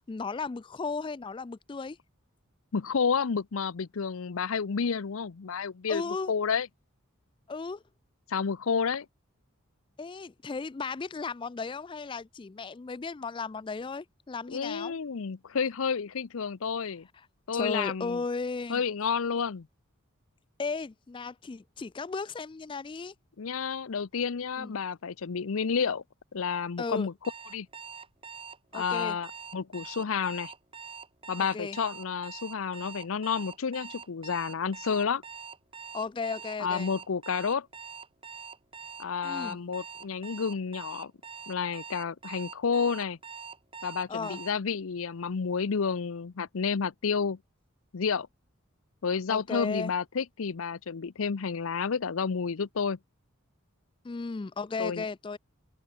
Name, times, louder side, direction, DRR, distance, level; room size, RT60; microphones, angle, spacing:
voice 1, 0.0-2.0 5.9-6.3 7.5-7.8 10.0-14.9 17.5-18.8 20.6-23.1 24.6-24.7 26.8-27.1 28.7-29.2 31.5-31.8 35.9-36.9 39.2-39.6 44.1-44.4 49.3-49.9 54.0-55.4, left 4 dB, 25° left, 0.3 m, -35 dB
voice 2, 2.7-6.7 8.3-9.1 14.5-17.1 17.5-18.2 18.7-19.7 23.4-26.0 26.3-27.1 27.5-27.7 28.7-30.5 31.3-35.2 36.6-37.7 39.0-41.1 41.5-43.2 43.8-47.4 47.9-48.3 49.0-53.0 54.8-55.1, left 6 dB, 75° left, 0.6 m, -30 dB
Alarm, 27.2-44.5, right 6 dB, 25° right, 1.9 m, -44 dB
open air
head